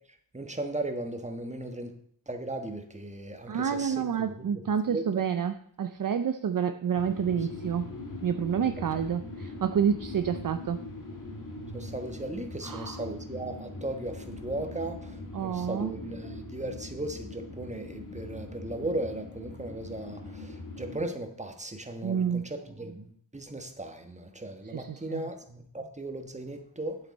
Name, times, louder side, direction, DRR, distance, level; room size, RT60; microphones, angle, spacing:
voice 1, 0.3-1.9 2.3-4.5 4.9-5.2 8.8-8.9 11.7-27.0, right 2 dB, 15° right, 5 dB, 1.3 m, -37 dB
voice 2, 3.5-7.9 8.2-10.8 12.6-13.0 15.3-15.9 22.0-22.4 24.7-25.2, right 7 dB, 45° right, 9 dB, 0.5 m, -29 dB
sound 1, 6.9-21.0, left 2 dB, 45° left, 1.9 m, -41 dB
9.1 x 8.0 x 4.2 m, 0.64 s
wide cardioid pair, 70°, 46 cm